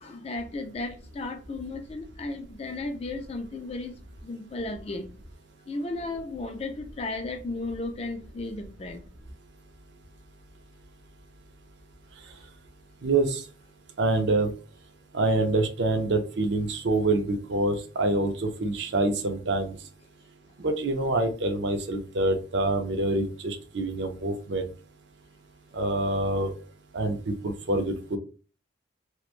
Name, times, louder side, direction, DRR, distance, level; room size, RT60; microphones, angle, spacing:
voice 1, 0.0-3.9 4.2-5.1 5.7-9.0, left 2 dB, 30° left, 0.3 m, -34 dB
voice 2, 13.0-13.4 14.0-14.5 15.1-19.8 20.6-24.7 25.7-26.5 26.9-28.2, right 2 dB, 60° right, 0.5 m, -26 dB
3.0 x 2.1 x 2.4 m
head